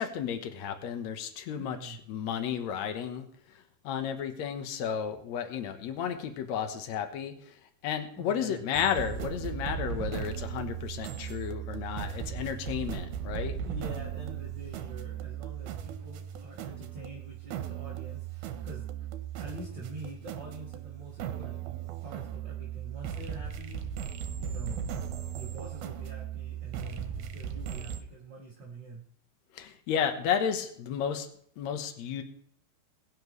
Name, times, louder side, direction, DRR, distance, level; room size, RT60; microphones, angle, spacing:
voice 1, 0.0-3.3 3.8-7.5 7.8-13.6 29.5-31.3 31.6-32.2, left 8 dB, 65° left, 7 dB, 1.8 m, -33 dB
voice 2, 1.6-2.0 8.1-8.6 13.6-18.9 19.4-21.6 22.0-23.8 24.4-24.8 25.3-29.0, right 2 dB, 30° right, -4 dB, 2.5 m, -45 dB
sound 1, 8.7-28.0, right 8 dB, 75° right, 2.7 m, -37 dB
21.5 x 10.5 x 3.2 m, 0.62 s
omnidirectional pair, 4.6 m